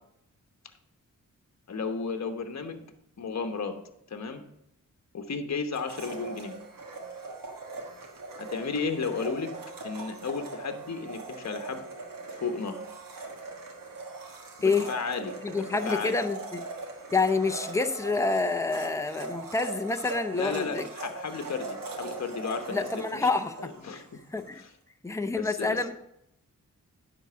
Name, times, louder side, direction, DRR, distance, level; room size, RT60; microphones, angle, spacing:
voice 1, 1.7-2.8 3.2-3.8 4.1-4.4 5.1-6.5 8.4-9.5 9.8-11.8 12.4-12.8 14.6-16.2 20.3-23.3 23.6-24.2 24.5-24.7 25.4-25.8, left 5 dB, 55° left, 7 dB, 1.0 m, -34 dB
Domestic sounds home sounds, 5.7-24.5, right 3 dB, 90° right, 1.5 m, -40 dB
voice 2, 15.4-16.7 17.1-20.9 22.7-24.0 24.3-24.6 25.0-25.9, left 3 dB, 10° left, 7 dB, 0.7 m, -28 dB
9.9 x 3.9 x 6.7 m, 0.80 s
cardioid pair, 75°, 32 cm